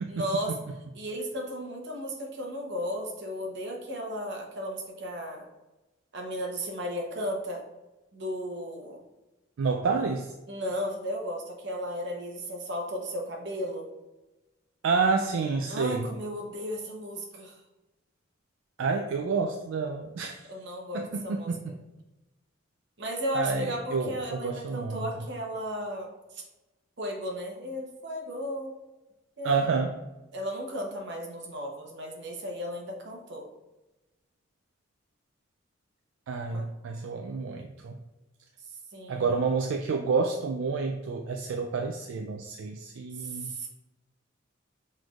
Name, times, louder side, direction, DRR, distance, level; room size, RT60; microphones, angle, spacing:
voice 1, 0.1-0.5 0.9-5.5 6.1-7.6 8.1-9.0 10.5-13.9 15.7-17.5 20.5-21.5 23.0-26.1 26.3-26.4 27.0-28.7 29.4-29.6 30.3-33.4 36.5-36.7 38.9-39.3 43.2-43.7, equal, 60° right, 1 dB, 0.9 m, -35 dB
voice 2, 9.6-10.3 14.8-16.1 18.8-20.4 20.9-21.7 23.3-25.3 29.4-30.0 36.3-38.0 39.1-43.6, right 4 dB, 75° right, 4 dB, 0.4 m, -29 dB
6.0 x 3.2 x 2.4 m, 1.0 s
head